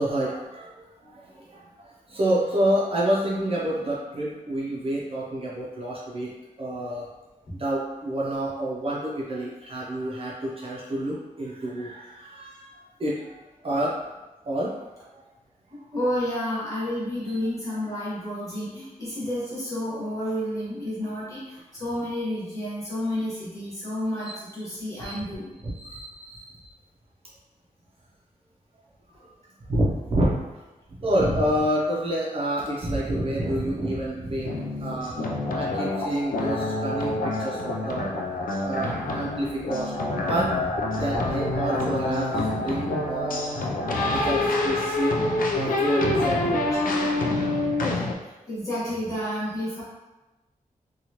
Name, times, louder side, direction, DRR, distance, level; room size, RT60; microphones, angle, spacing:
voice 1, 0.0-7.1 7.6-14.0 14.5-15.2 17.3-17.4 24.2-24.4 25.0-25.2 25.6-26.5 29.2-29.3 29.7-30.4 31.0-35.2 35.5-38.1 38.6-43.5 44.0-45.2 45.5-46.7, right 1 dB, 40° right, -5 dB, 0.5 m, -28 dB
voice 2, 15.9-25.5 46.7-46.8 48.5-49.8, left 1 dB, 25° left, -9 dB, 1.2 m, -30 dB
sound 1, 34.4-48.1, left 2 dB, 80° left, 0.4 m, -27 dB
2.9 x 2.3 x 2.8 m, 1.1 s
wide cardioid pair, 165°, 14 cm